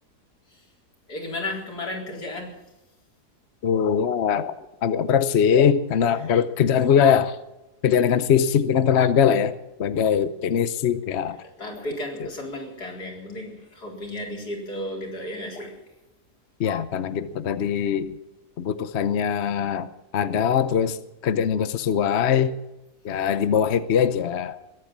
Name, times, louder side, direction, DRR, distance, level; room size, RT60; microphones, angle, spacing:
voice 1, 1.1-2.7 6.0-6.3 10.1-10.2 11.4-15.8, left 1 dB, 70° left, 0 dB, 4.5 m, -34 dB
voice 2, 3.6-4.5 4.8-7.4 7.8-9.5 9.8-11.4 16.6-18.2 18.6-19.9 20.1-21.0 21.2-22.5 23.0-24.6, left 8 dB, 55° left, 13 dB, 0.9 m, -21 dB
21.5 x 9.2 x 7.3 m, 0.98 s
omnidirectional pair, 1.7 m